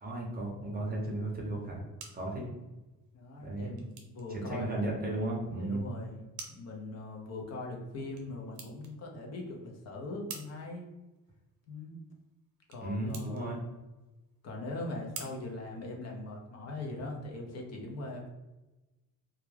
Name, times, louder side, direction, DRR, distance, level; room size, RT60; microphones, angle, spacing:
voice 1, 0.0-1.8 2.1-2.4 3.4-3.8 4.3-5.8 12.8-13.6, right 2 dB, 25° right, -2 dB, 0.6 m, -35 dB
sound 1, 1.6-16.5, right 5 dB, 80° right, 0.7 m, -53 dB
voice 2, 3.1-4.8 5.6-6.1 6.4-10.8 11.7-12.0 12.7-13.6 14.4-18.3, left 2 dB, 45° left, 0 dB, 0.6 m, -41 dB
2.3 x 2.1 x 3.1 m, 1.1 s
cardioid pair, 145°, 36 cm